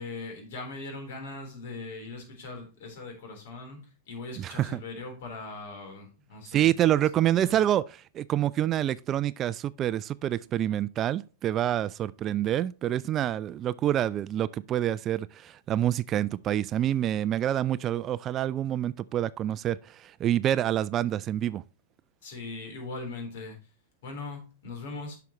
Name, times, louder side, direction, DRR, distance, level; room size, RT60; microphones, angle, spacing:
voice 1, 0.0-6.7 7.2-7.5 22.2-23.6 24.0-25.2, left 3 dB, 65° left, 3.6 m, -40 dB
voice 2, 4.4-4.8 6.5-7.8 8.1-21.6, right 11 dB, 30° right, 0.3 m, -27 dB
9.4 x 5.9 x 3.0 m
hypercardioid pair, 125°, 0 cm